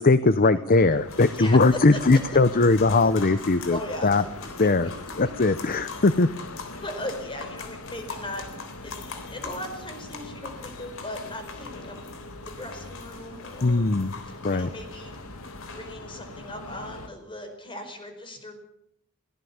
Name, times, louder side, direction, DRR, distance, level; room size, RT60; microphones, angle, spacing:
voice 1, 0.0-4.2 4.6-4.9 5.2-6.3 13.6-14.1 14.4-14.7, left 3 dB, 40° left, 13 dB, 0.7 m, -20 dB
sound 1, 0.7-17.1, left 2 dB, 80° left, 2.0 m, -42 dB
sound 2, 1.1-15.9, left 5 dB, 65° left, 3.6 m, -43 dB
voice 2, 1.1-1.6 1.9-2.4 3.7-4.1 4.6-4.7 5.2-5.3 6.8-8.4 8.8-12.0 12.4-13.9 14.3-15.2 15.7-18.5, left 1 dB, 25° left, 6 dB, 4.9 m, -38 dB
22.5 x 17.5 x 7.2 m, 0.79 s
head